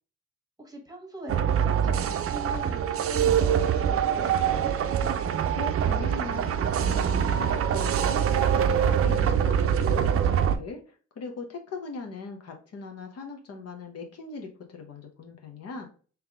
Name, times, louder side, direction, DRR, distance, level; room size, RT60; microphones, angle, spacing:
voice 1, 0.6-4.7, right 1 dB, 10° right, 1 dB, 1.4 m, -42 dB
sound 1, 1.3-10.6, right 8 dB, 50° right, 0.5 m, -24 dB
voice 2, 5.5-10.8 11.2-15.9, left 3 dB, 55° left, 3 dB, 0.9 m, -40 dB
3.4 x 3.1 x 3.5 m, 0.39 s
cardioid pair, 90°, 30 cm